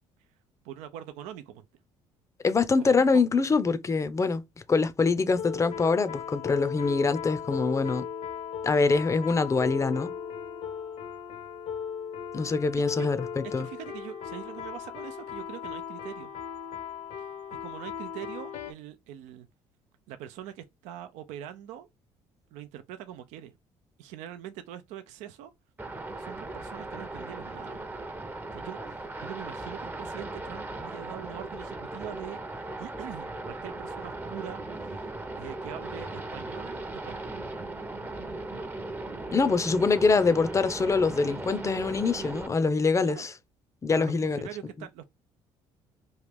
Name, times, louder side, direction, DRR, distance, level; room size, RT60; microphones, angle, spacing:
voice 1, 0.6-1.7 2.8-3.2 13.0-13.1 13.6-16.3 17.5-19.5 20.1-21.9 22.5-23.5 24.0-25.5 26.2-28.0 28.5-37.5 43.0-43.3 43.9-45.0, right 11 dB, 80° right, 0.4 m, -43 dB
voice 2, 2.4-4.4 4.7-8.1 8.6-10.1 12.3-13.7 39.3-43.3 43.8-44.4, left 4 dB, 25° left, 0.5 m, -24 dB
sound 1, 5.4-18.7, left 7 dB, 70° left, 0.8 m, -37 dB
sound 2, 25.8-42.5, right 2 dB, 15° right, 0.6 m, -38 dB
3.1 x 2.4 x 3.4 m
supercardioid pair, 75°, 12 cm